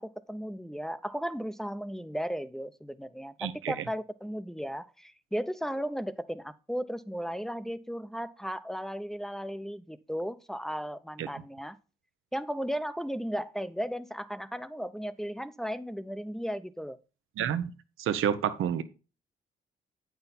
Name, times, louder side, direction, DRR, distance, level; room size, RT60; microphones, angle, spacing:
voice 1, 0.0-11.8 12.3-17.0, equal, ahead, 0.7 m, -35 dB
voice 2, 3.4-3.7 11.2-11.3 17.4-17.7 18.0-18.8, right 9 dB, 80° right, 0.8 m, -29 dB
8.7 x 5.9 x 4.2 m
supercardioid pair, 60°, 21 cm